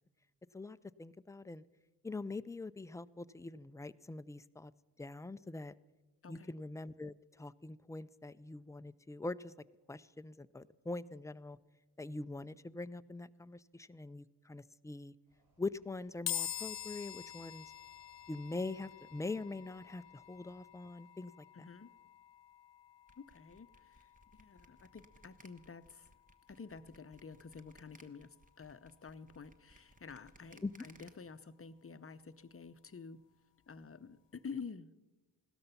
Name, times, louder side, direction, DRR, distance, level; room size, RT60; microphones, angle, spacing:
voice 1, 0.5-1.6 2.0-4.7 5.0-5.7 6.3-9.5 9.9-11.6 12.0-15.1 15.6-17.7 18.3-21.4 30.6-30.7, left 3 dB, 10° left, 14 dB, 0.4 m, -43 dB
voice 2, 6.2-6.6 21.5-21.9 23.2-26.1 26.5-33.2 33.7-34.9, left 5 dB, 30° left, 13 dB, 0.7 m, -50 dB
sound 1, 15.3-20.6, equal, 80° right, 6.3 m, -74 dB
sound 2, 16.3-29.6, left 11 dB, 85° left, 1.0 m, -48 dB
sound 3, 23.1-31.1, right 1 dB, 20° right, 1.2 m, -62 dB
16.5 x 13.0 x 5.7 m, 1.2 s
cardioid pair, 55°, 42 cm